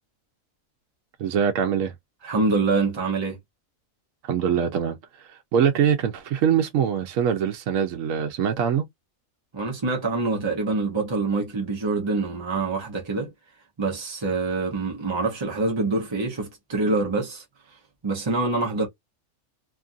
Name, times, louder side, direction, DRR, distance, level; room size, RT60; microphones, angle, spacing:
voice 1, 1.2-1.9 4.2-8.9, right 8 dB, 75° right, 1.0 m, -23 dB
voice 2, 2.2-3.4 9.5-13.3 13.8-18.9, right 3 dB, 30° right, 0.6 m, -25 dB
3.0 x 2.4 x 2.4 m
omnidirectional pair, 1.4 m